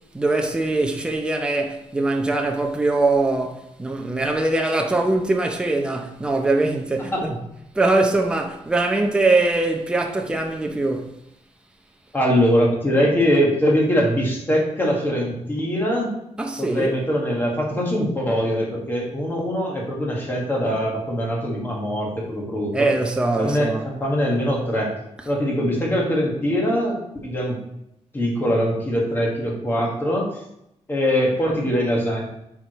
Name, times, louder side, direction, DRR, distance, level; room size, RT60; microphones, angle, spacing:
voice 1, 0.1-7.4 7.7-11.2 16.4-16.9 22.7-23.9, right 2 dB, 10° right, 0.5 m, -22 dB
voice 2, 12.1-16.1 16.6-22.9 23.4-24.9 25.2-27.0 27.2-27.6 28.1-30.3 30.9-32.2, equal, 20° left, 1.6 m, -22 dB
8.6 x 4.8 x 3.0 m
wide cardioid pair, 180°, 11 cm